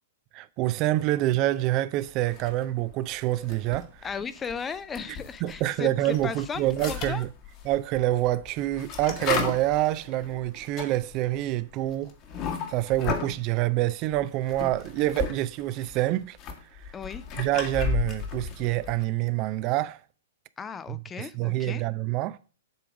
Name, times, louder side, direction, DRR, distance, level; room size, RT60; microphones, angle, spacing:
voice 1, 0.3-4.1 5.4-7.3 7.7-12.1 12.7-16.4 17.4-20.0 20.9-22.4, right 15 dB, 40° right, 0.4 m, -27 dB
sound 1, 2.2-2.9 3.3-5.6 6.0-13.4 14.1-15.4 15.6-19.0, left 6 dB, 35° left, 1.4 m, -34 dB
voice 2, 4.0-7.3 16.9-17.2 20.6-21.8, left 6 dB, 15° left, 0.5 m, -36 dB
7.9 x 3.5 x 6.1 m
hypercardioid pair, 120°, 0 cm